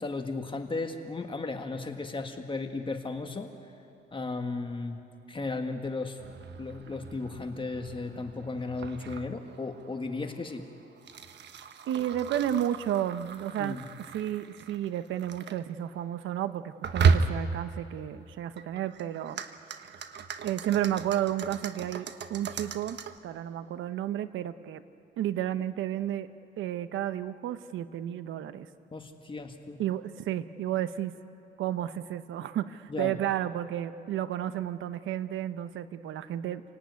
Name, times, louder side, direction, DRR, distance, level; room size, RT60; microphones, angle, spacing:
voice 1, 0.0-3.5 4.1-5.0 5.3-6.2 6.6-10.7 13.6-13.9 28.9-29.8 32.9-33.1, left 3 dB, 25° left, 5 dB, 1.8 m, -35 dB
sound 1, 6.2-15.6 16.8-17.7 18.6-23.2, right 5 dB, 60° right, 1.2 m, -34 dB
voice 2, 11.9-19.4 19.8-19.9 20.4-23.0 23.2-24.8 25.2-26.3 26.6-28.7 29.8-31.1 31.6-36.6, right 11 dB, 80° right, 12 dB, 0.9 m, -32 dB
29.5 x 18.0 x 9.5 m, 2.8 s
cardioid pair, 90°, 20 cm